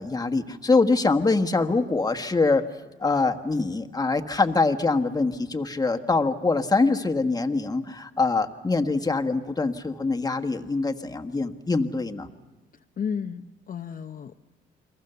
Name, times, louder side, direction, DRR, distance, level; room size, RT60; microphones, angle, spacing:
voice 1, 0.0-2.6 3.0-12.3, left 3 dB, 20° left, 7 dB, 1.4 m, -24 dB
voice 2, 13.0-14.3, left 7 dB, 45° left, 5 dB, 0.8 m, -32 dB
30.0 x 22.5 x 6.9 m, 1.2 s
cardioid pair, 90°, 20 cm